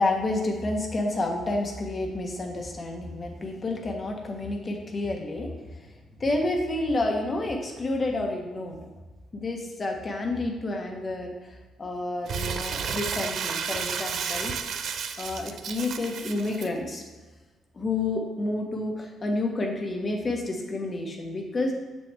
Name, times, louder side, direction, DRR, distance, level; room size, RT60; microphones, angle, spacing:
voice 1, 0.0-5.5 5.7-5.8 6.2-8.8 9.3-14.5 15.2-17.0 17.7-21.7, left 2 dB, 35° left, 2 dB, 1.3 m, -29 dB
Crumpling crinkling, 12.3-16.7, right 6 dB, 65° right, 0.5 m, -32 dB
6.9 x 6.4 x 3.4 m, 1.2 s
cardioid pair, 90°, 0 cm